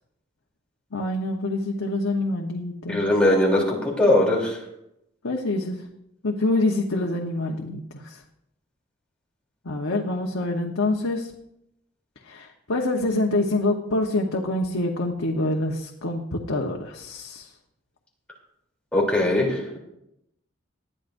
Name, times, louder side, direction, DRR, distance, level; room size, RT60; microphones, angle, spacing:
voice 1, 0.9-3.1 5.2-5.8 6.2-8.2 9.6-11.3 12.3-17.5, left 2 dB, 90° left, 1 dB, 1.1 m, -26 dB
voice 2, 2.9-4.6 18.9-19.8, left 1 dB, 5° left, -3 dB, 3.3 m, -20 dB
19.5 x 12.0 x 2.6 m, 0.82 s
head